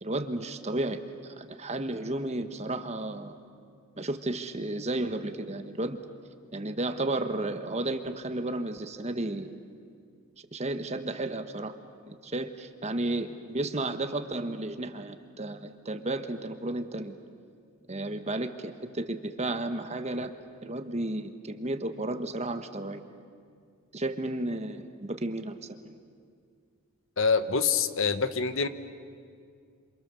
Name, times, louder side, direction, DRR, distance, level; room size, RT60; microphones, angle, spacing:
voice 1, 0.0-3.4 4.0-6.0 6.5-9.5 10.5-11.8 12.1-17.2 17.9-20.3 20.6-23.0 23.9-25.9, right 2 dB, 30° right, 8 dB, 1.2 m, -33 dB
voice 2, 27.2-28.7, left 5 dB, 60° left, 11 dB, 1.1 m, -25 dB
27.5 x 27.5 x 6.9 m, 2.2 s
head